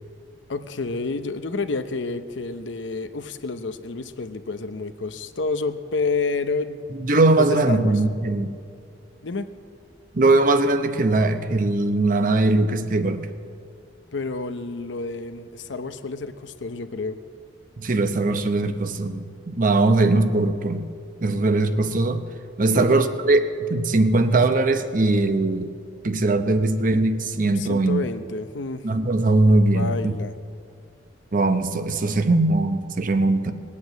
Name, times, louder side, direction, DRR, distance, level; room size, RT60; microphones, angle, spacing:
voice 1, 0.5-6.9 7.4-8.0 9.2-9.5 14.1-17.2 19.8-19.9 22.7-22.9 27.6-28.8 29.7-30.3, left 3 dB, 90° left, 10 dB, 0.8 m, -29 dB
voice 2, 7.0-8.5 10.1-13.3 17.8-20.8 21.2-22.2 22.6-25.7 26.0-28.0 28.8-30.1 31.3-33.5, right 2 dB, 45° right, 9 dB, 0.8 m, -20 dB
19.5 x 8.5 x 8.2 m, 2.4 s
head